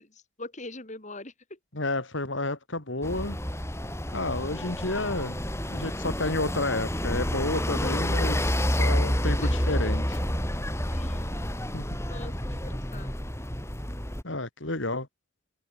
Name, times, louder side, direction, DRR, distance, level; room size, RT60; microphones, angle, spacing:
voice 1, 0.4-1.3 9.4-9.5 10.9-11.3 12.1-13.1, left 2 dB, 35° left, 3.4 m, -42 dB
voice 2, 1.7-3.4 4.1-5.4 5.7-10.2 11.7-11.8 14.2-15.1, left 2 dB, 65° left, 3.3 m, -31 dB
sound 1, 3.0-14.2, equal, 15° left, 5.2 m, -29 dB
open air
head